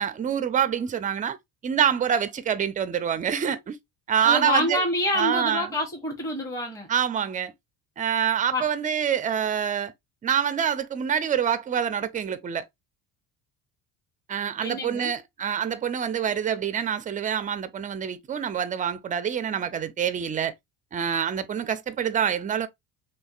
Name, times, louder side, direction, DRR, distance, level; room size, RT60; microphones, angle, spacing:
voice 1, 0.0-1.4 1.6-3.8 4.1-4.8 5.1-5.8 6.9-7.5 8.0-9.9 10.2-12.7 14.3-20.5 20.9-22.7, right 8 dB, 20° right, 0.3 m, -26 dB
voice 2, 4.2-6.9 8.5-8.7 14.6-15.1, left 1 dB, 5° left, 0.8 m, -27 dB
3.2 x 2.5 x 2.3 m
supercardioid pair, 80°, 44 cm